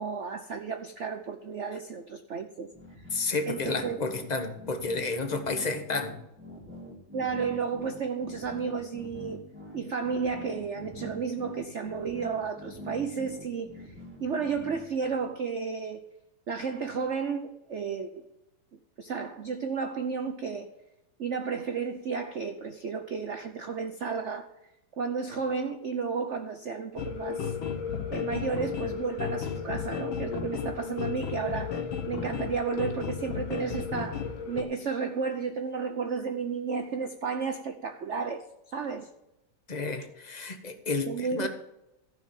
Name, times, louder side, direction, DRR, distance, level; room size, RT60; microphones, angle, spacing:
voice 1, 0.0-2.7 3.5-4.0 7.1-9.4 9.7-13.9 14.2-16.0 16.5-18.3 19.0-20.7 21.2-24.5 25.0-27.6 28.1-31.7 32.1-39.1 41.1-41.5, right 5 dB, 90° right, 7 dB, 0.6 m, -32 dB
sound 1, 2.7-15.3, equal, 5° right, 1.5 m, -45 dB
voice 2, 3.1-6.2 39.7-41.5, left 3 dB, 30° left, 7 dB, 0.9 m, -31 dB
sound 2, 27.0-34.6, left 6 dB, 70° left, 2.0 m, -33 dB
14.5 x 6.1 x 7.1 m, 0.91 s
omnidirectional pair, 2.3 m